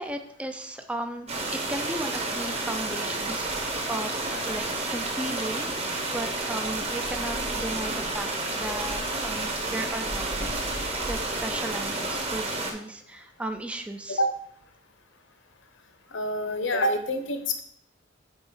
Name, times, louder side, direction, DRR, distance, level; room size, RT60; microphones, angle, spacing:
voice 1, 0.0-14.2, right 1 dB, 5° right, 6 dB, 0.4 m, -36 dB
sound 1, 1.3-12.7, right 2 dB, 30° right, 1.1 m, -30 dB
voice 2, 16.1-17.6, left 1 dB, 70° left, 7 dB, 1.0 m, -26 dB
5.2 x 4.4 x 6.2 m, 0.65 s
head